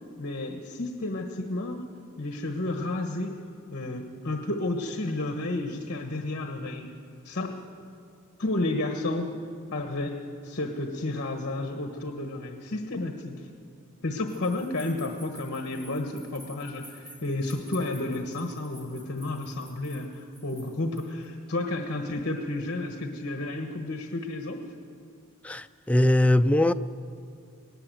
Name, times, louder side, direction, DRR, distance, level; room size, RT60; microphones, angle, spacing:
voice 1, 0.2-1.9 2.2-3.3 3.7-6.9 7.2-7.5 8.4-9.4 9.7-13.4 14.0-24.6, left 2 dB, 50° left, 1.3 m, -31 dB
sound 1, 14.3-21.3, right 1 dB, 10° right, 3.6 m, -51 dB
voice 2, 25.4-26.7, left 1 dB, 5° left, 0.4 m, -21 dB
19.0 x 18.5 x 7.8 m
head